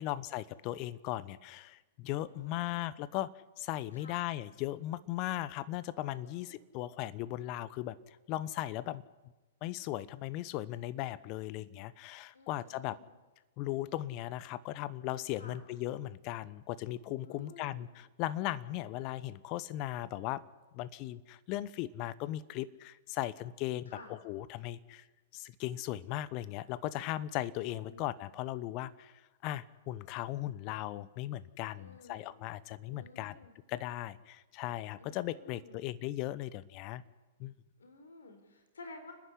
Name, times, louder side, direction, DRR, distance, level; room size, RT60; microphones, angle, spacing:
voice 1, 0.0-8.0 8.3-9.0 9.6-13.0 13.6-20.4 20.7-25.0 25.3-29.1 29.4-33.4 33.7-37.0 37.4-37.5, left 14 dB, 40° left, 18 dB, 1.0 m, -37 dB
voice 2, 2.3-2.8 3.9-4.2 6.2-6.6 12.3-13.1 15.3-15.6 17.2-17.8 23.9-24.1 27.7-28.1 31.8-32.2 32.9-33.5 35.0-35.9 37.8-39.1, left 3 dB, 75° left, 7 dB, 4.0 m, -53 dB
30.0 x 10.0 x 9.8 m, 1.2 s
figure-of-eight pair, 110°, 0 cm